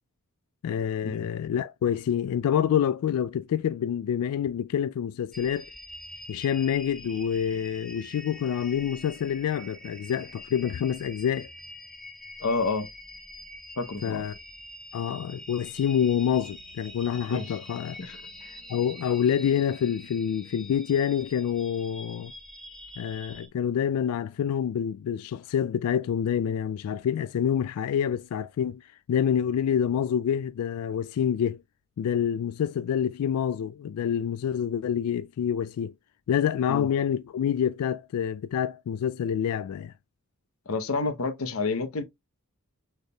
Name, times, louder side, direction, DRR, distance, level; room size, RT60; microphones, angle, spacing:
voice 1, 0.6-5.7 6.3-11.5 14.0-14.3 14.9-18.0 18.4-22.3 23.0-31.6 32.0-35.9 36.3-39.9, left 8 dB, 80° left, 0.3 m, -27 dB
sound 1, 5.3-23.5, left 1 dB, ahead, 0.7 m, -45 dB
voice 2, 12.4-12.9 13.8-14.3 17.3-17.5 18.0-18.2 36.7-36.9 40.7-42.0, left 3 dB, 65° left, 0.8 m, -29 dB
6.3 x 3.5 x 2.2 m
head